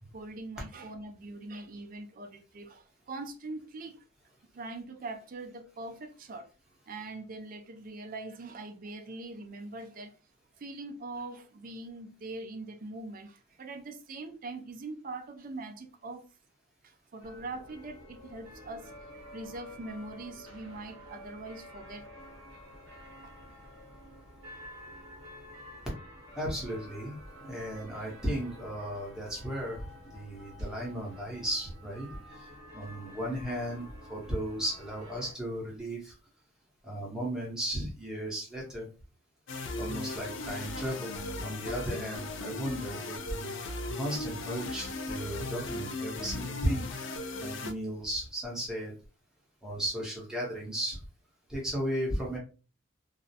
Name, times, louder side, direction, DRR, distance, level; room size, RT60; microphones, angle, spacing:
voice 1, 0.1-4.0 4.5-6.5 6.9-10.1 10.6-16.3 17.1-18.9 19.3-22.1, right 2 dB, 40° right, 0.4 m, -42 dB
sound 1, 17.2-35.3, equal, 80° right, 0.8 m, -50 dB
voice 2, 26.3-29.8 30.1-32.1 32.3-32.5 32.7-36.1 36.8-38.9 39.8-41.1 41.4-43.5 43.9-46.9 47.4-48.9 49.6-51.0 51.5-52.4, right 1 dB, 5° right, 0.8 m, -35 dB
sound 2, 39.5-47.7, left 2 dB, 65° left, 0.4 m, -37 dB
2.4 x 2.0 x 2.7 m
head